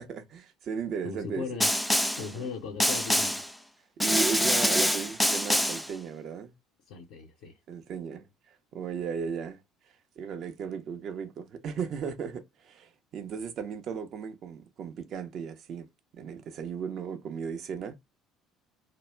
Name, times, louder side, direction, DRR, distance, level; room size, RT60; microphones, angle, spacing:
voice 1, 0.0-1.5 2.2-2.5 4.0-6.5 7.7-9.6 10.2-15.9 16.1-18.0, right 6 dB, 50° right, 0.6 m, -36 dB
voice 2, 1.0-1.7 2.2-3.4 6.9-7.6, left 6 dB, 65° left, 0.5 m, -38 dB
Snare drum, 1.6-2.3 2.8-3.5 4.0-5.9, equal, ahead, 0.3 m, -25 dB
2.3 x 2.0 x 3.2 m
hypercardioid pair, 60°, 0 cm